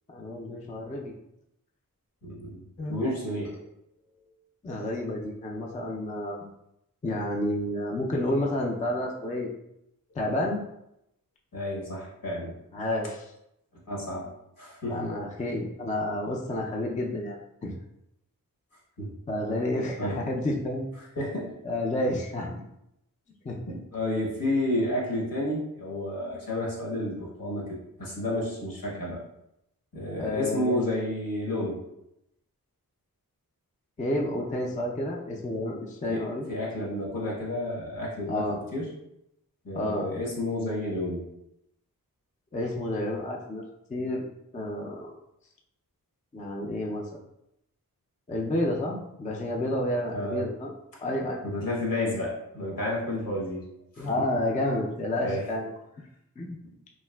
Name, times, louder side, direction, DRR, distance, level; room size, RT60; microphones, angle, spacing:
voice 1, 0.1-1.1 2.8-3.0 4.6-6.5 7.0-9.5 10.2-10.6 12.7-13.3 14.9-17.7 19.3-20.9 21.6-22.6 23.4-23.6 30.2-30.8 34.0-36.5 38.3-38.6 39.7-40.1 42.5-43.6 43.9-44.3 44.5-45.1 46.3-47.1 48.3-50.7 51.0-51.4 54.0-55.7 56.4-56.6, left 1 dB, 20° left, -1 dB, 0.4 m, -30 dB
voice 2, 2.2-2.6 2.9-3.6 4.0-4.3 11.5-12.5 13.9-14.3 14.6-15.1 19.0-19.1 20.0-20.2 21.2-21.5 23.7-29.2 29.9-31.8 36.1-38.9 39.6-41.3 50.1-50.4 51.4-53.6 54.0-54.3 55.2-55.5, left 1 dB, 70° left, -4 dB, 1.1 m, -31 dB
3.2 x 2.7 x 2.2 m, 0.82 s
wide cardioid pair, 70°, 35 cm